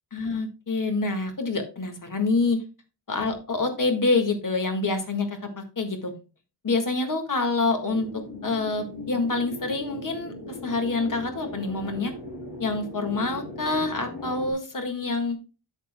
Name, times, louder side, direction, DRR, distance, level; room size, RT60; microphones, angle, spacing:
voice 1, 0.1-2.6 3.1-6.1 6.6-12.1 12.6-15.4, left 3 dB, 50° left, 6 dB, 1.8 m, -27 dB
sound 1, 7.9-14.5, left 2 dB, 90° left, 2.9 m, -38 dB
11.5 x 7.1 x 2.2 m, 0.31 s
wide cardioid pair, 130°, 41 cm